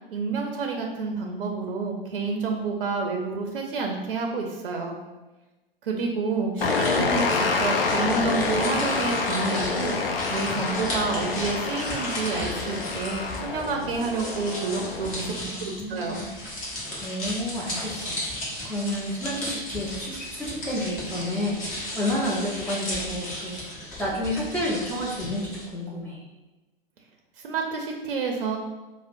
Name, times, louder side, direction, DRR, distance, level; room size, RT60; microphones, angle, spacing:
voice 1, 0.1-5.0 5.8-16.2 27.4-28.6, right 4 dB, 65° right, 2 dB, 0.5 m, -29 dB
sound 1, 6.6-15.3, left 4 dB, 75° left, 0.5 m, -27 dB
sound 2, 6.6-25.6, left 1 dB, 25° left, 1.2 m, -36 dB
voice 2, 15.0-16.3 17.0-26.2, left 1 dB, 5° left, -7 dB, 0.6 m, -31 dB
4.8 x 2.0 x 2.5 m, 1.1 s
figure-of-eight pair, 95°, 29 cm